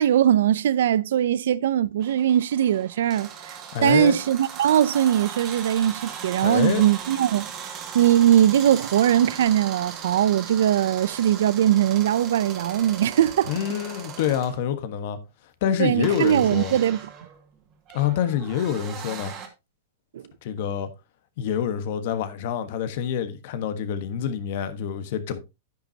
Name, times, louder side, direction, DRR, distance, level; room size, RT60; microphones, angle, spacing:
voice 1, 0.0-3.3 3.8-7.5 7.9-13.5 15.8-17.1 20.1-20.2, right 10 dB, 80° right, 0.5 m, -20 dB
sound 1, 2.0-14.6 16.0-19.5, right 7 dB, 30° right, 2.1 m, -38 dB
voice 2, 3.7-4.2 6.4-6.8 13.5-15.2 15.6-16.8 17.9-19.3 20.4-20.9 21.4-25.4, left 9 dB, 55° left, 1.3 m, -26 dB
10.0 x 9.1 x 2.8 m
supercardioid pair, 150°, 0 cm